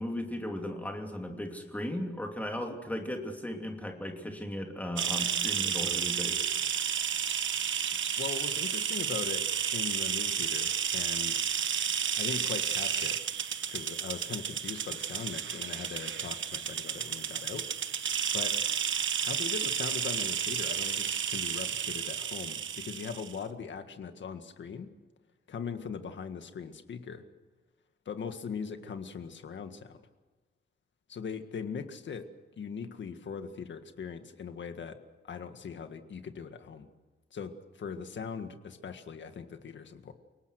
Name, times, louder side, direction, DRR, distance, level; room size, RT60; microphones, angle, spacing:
voice 1, 0.0-6.4, left 1 dB, 10° left, 3 dB, 2.8 m, -36 dB
sound 1, 5.0-23.4, right 8 dB, 75° right, 1.1 m, -32 dB
voice 2, 8.2-9.4 9.7-11.5 12.2-13.2 13.7-17.6 18.3-18.5 19.2-24.9 25.5-27.2 28.0-30.0 31.1-32.2 32.6-35.0 35.2-36.9 37.3-40.1, left 6 dB, 70° left, 8 dB, 1.9 m, -40 dB
29.5 x 18.5 x 6.5 m, 1.3 s
wide cardioid pair, 170°, 20 cm